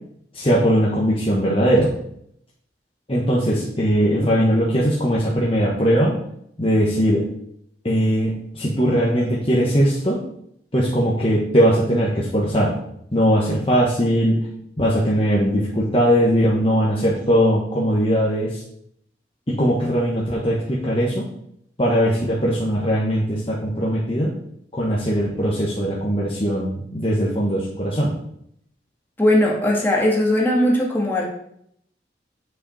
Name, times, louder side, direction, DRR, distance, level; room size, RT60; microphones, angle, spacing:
voice 1, 0.3-1.9 3.1-6.2 6.6-7.2 7.8-10.2 10.7-12.7 13.1-14.4 14.8-18.6 19.5-21.3 21.8-24.3 24.7-28.1, equal, 30° left, -5 dB, 1.3 m, -20 dB
voice 2, 29.2-31.3, left 1 dB, 10° left, -3 dB, 1.5 m, -18 dB
8.0 x 6.0 x 4.2 m, 0.72 s
head